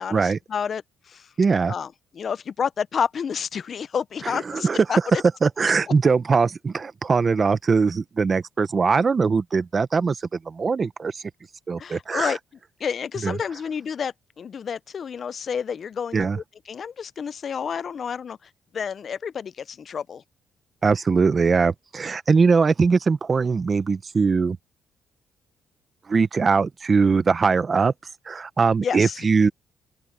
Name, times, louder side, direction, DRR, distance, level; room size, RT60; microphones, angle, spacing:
voice 1, 0.0-1.3 1.7-5.0 11.8-12.4 12.8-20.2 28.8-29.3, left 7 dB, 50° left, 0.6 m, -30 dB
voice 2, 1.4-1.7 4.3-4.8 5.1-11.2 11.7-12.4 13.2-13.4 16.1-16.4 20.8-24.6 26.1-27.9 28.3-29.5, right 5 dB, 35° right, 1.1 m, -21 dB
open air
cardioid pair, 90°, 0 cm